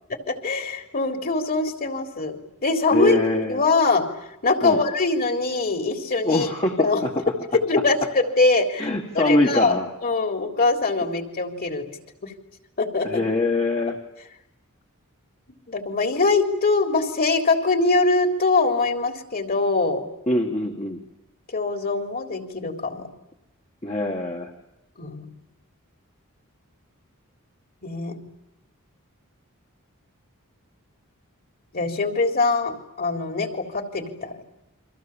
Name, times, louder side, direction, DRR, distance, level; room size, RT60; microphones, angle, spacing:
voice 1, 0.3-4.0 4.4-6.5 6.8-7.0 7.6-8.9 9.1-11.8 12.2-12.3 12.8-13.2 15.7-20.1 21.5-23.1 25.0-25.3 27.8-28.2 31.7-34.4, left 3 dB, 45° left, 5 dB, 3.7 m, -23 dB
voice 2, 2.9-3.6 4.6-4.8 6.2-7.1 8.8-9.9 13.0-14.0 20.3-21.0 23.8-24.5, left 1 dB, 25° left, 2 dB, 2.0 m, -23 dB
29.5 x 25.0 x 7.4 m, 0.89 s
head